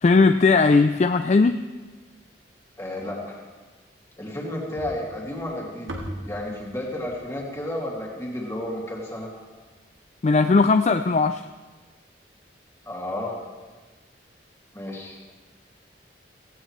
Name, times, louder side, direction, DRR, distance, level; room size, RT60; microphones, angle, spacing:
voice 1, 0.0-1.6 10.2-11.4, left 4 dB, 35° left, 9 dB, 0.3 m, -18 dB
voice 2, 2.8-3.4 4.2-5.9 6.3-9.3 12.9-13.4 14.7-15.2, left 1 dB, 15° left, -3 dB, 2.5 m, -32 dB
sound 1, 4.8-9.1, right 1 dB, 90° right, 2.4 m, -40 dB
17.0 x 16.5 x 3.2 m, 1.3 s
head